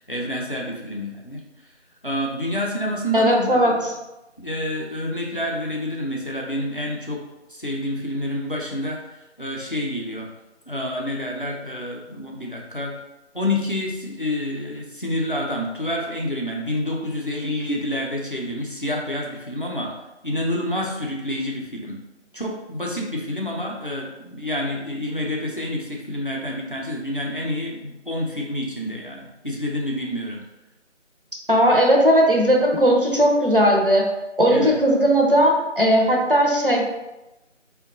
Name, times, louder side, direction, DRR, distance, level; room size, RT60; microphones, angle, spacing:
voice 1, 0.0-1.4 2.0-3.9 4.4-7.2 7.5-10.3 10.7-12.9 13.3-19.9 20.2-22.0 22.3-30.4 34.5-34.8, left 1 dB, 45° left, -1 dB, 0.5 m, -28 dB
voice 2, 3.1-3.7 31.5-34.0 34.4-36.8, equal, 50° right, -1 dB, 0.5 m, -17 dB
3.6 x 2.2 x 2.5 m, 0.99 s
figure-of-eight pair, 170°, 36 cm